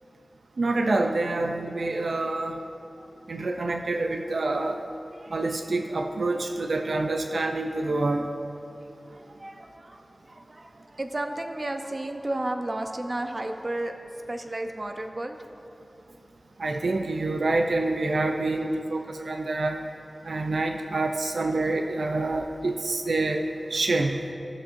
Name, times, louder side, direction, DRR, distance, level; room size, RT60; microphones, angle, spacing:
voice 1, 0.6-2.6 3.3-4.8 5.3-8.3 16.6-19.8 20.2-23.4 23.7-24.3, right 2 dB, 85° right, 4 dB, 0.5 m, -27 dB
voice 2, 5.1-5.4 8.8-14.0 14.3-15.4, right 1 dB, 40° right, 4 dB, 0.7 m, -33 dB
17.0 x 6.9 x 2.6 m, 2.8 s
wide cardioid pair, 60°, 0 cm